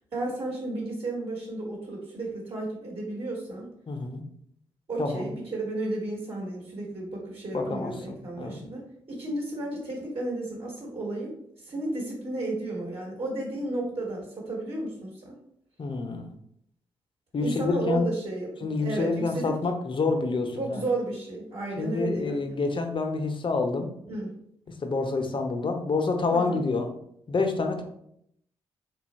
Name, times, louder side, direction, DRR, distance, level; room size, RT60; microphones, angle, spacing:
voice 1, 0.1-3.7 4.9-15.4 17.4-18.5 18.8-19.6 20.6-22.5 24.1-24.3 26.3-26.6, right 2 dB, 50° right, -3 dB, 1.2 m, -33 dB
voice 2, 3.9-4.2 5.0-5.3 7.5-8.6 15.8-16.3 17.3-18.1 18.6-20.9 21.8-23.9 24.8-26.9 27.3-27.8, left 3 dB, 45° left, 5 dB, 0.7 m, -28 dB
2.8 x 2.3 x 4.0 m, 0.73 s
hypercardioid pair, 40°, 12 cm